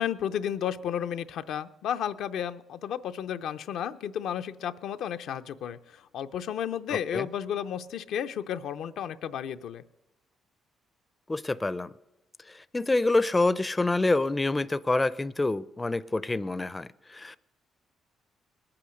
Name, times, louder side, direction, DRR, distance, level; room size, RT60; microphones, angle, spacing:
voice 1, 0.0-9.8, left 9 dB, 80° left, 9 dB, 0.5 m, -32 dB
voice 2, 11.3-11.9 12.5-17.4, left 2 dB, 20° left, 17 dB, 0.4 m, -27 dB
20.0 x 8.7 x 6.4 m, 0.97 s
cardioid pair, 90°, 0 cm